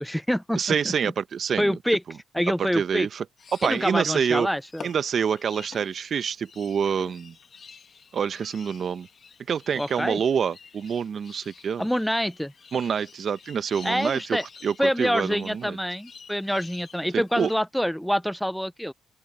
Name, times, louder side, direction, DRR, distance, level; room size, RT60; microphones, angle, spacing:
voice 1, 0.0-0.9 1.6-2.0 2.3-3.1 3.6-4.9 9.8-10.2 11.8-12.5 13.8-14.4 14.8-18.9, equal, ahead, 0.5 m, -26 dB
voice 2, 0.6-1.7 2.6-3.2 3.6-4.5 4.8-7.3 8.1-9.1 9.5-11.9 12.7-15.8 17.1-17.5, right 7 dB, 55° right, 0.9 m, -27 dB
sound 1, 3.4-17.6, left 6 dB, 45° left, 2.1 m, -49 dB
open air
cardioid pair, 90°, 0 cm